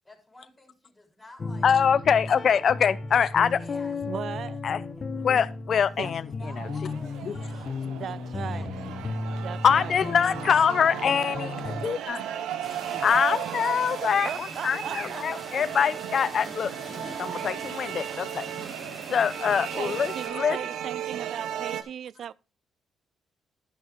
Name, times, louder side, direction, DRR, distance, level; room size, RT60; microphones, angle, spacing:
voice 1, 0.0-1.7 3.1-3.2 3.5-4.0 5.7-7.7 8.0-8.8 10.5-13.1, left 1 dB, 15° left, 3.8 m, -51 dB
sound 1, 1.4-11.9, left 3 dB, 40° left, 1.3 m, -35 dB
voice 2, 1.6-3.6 4.6-4.8 5.2-6.2 6.6-6.7 7.3-7.4 9.6-11.5 11.8-12.2 13.0-16.7 17.2-18.5 19.1-20.6, left 7 dB, 55° left, 0.6 m, -24 dB
voice 3, 4.1-4.6 6.0-6.1 7.9-8.7 9.4-10.0 12.9-13.1 14.2-15.2 17.3-17.4 19.8-22.3, right 9 dB, 65° right, 0.4 m, -37 dB
sound 2, 6.4-21.8, right 10 dB, 85° right, 0.9 m, -35 dB
sound 3, 12.6-20.3, right 1 dB, 30° right, 3.3 m, -43 dB
11.5 x 6.5 x 3.5 m
cardioid pair, 90°, 0 cm